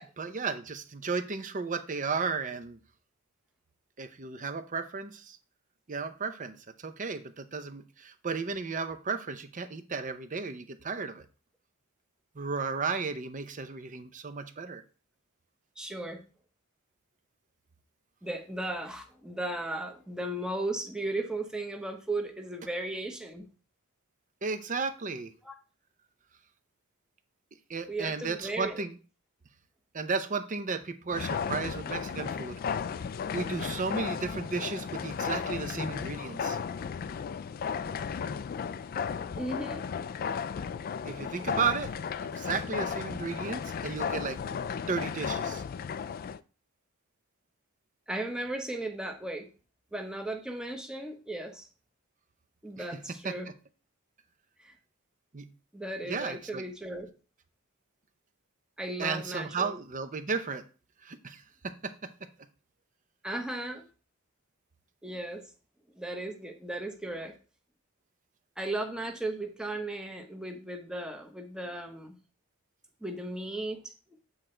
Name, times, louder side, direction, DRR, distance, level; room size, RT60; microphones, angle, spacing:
voice 1, 0.2-2.8 4.0-5.4 5.9-11.2 12.4-14.8 24.4-25.3 27.7-29.0 29.9-32.6 33.3-36.6 41.0-41.9 42.2-44.4 44.9-45.6 52.8-52.9 53.2-53.3 55.3-55.5 56.1-56.6 59.0-60.6 61.0-61.9, right 4 dB, 35° right, 9 dB, 0.7 m, -34 dB
voice 2, 15.8-16.2 18.2-23.5 25.4-25.5 27.9-28.8 39.4-39.9 48.1-49.5 49.9-51.7 52.6-53.5 54.6-54.7 55.7-57.1 58.8-59.7 63.2-63.8 65.0-65.5 65.9-67.4 68.6-72.1 73.0-73.8, right 1 dB, 5° right, 3 dB, 0.9 m, -36 dB
sound 1, 31.1-46.4, left 6 dB, 45° left, 0.3 m, -34 dB
8.2 x 3.9 x 4.4 m, 0.36 s
head